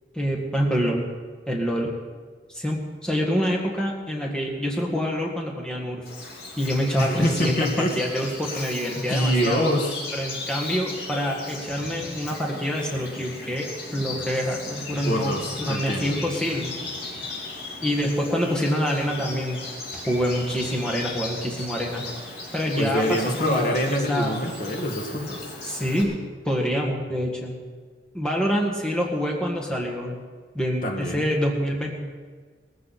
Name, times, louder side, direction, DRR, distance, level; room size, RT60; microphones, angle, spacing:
voice 1, 0.1-1.0 1.5-1.9 2.5-6.0 6.6-9.7 10.1-16.8 17.8-19.6 20.1-22.0 22.5-24.4 25.6-26.2 26.5-27.6 28.1-30.2 30.5-32.0, equal, 5° left, -2 dB, 1.8 m, -26 dB
Bird vocalization bird call bird song, 6.1-26.0, left 2 dB, 80° left, 5.1 m, -36 dB
voice 2, 7.0-7.9 8.5-8.6 8.9-10.0 15.0-16.2 22.7-25.5 30.8-31.3, equal, 50° left, 1 dB, 1.8 m, -25 dB
20.0 x 14.5 x 4.3 m, 1.5 s
head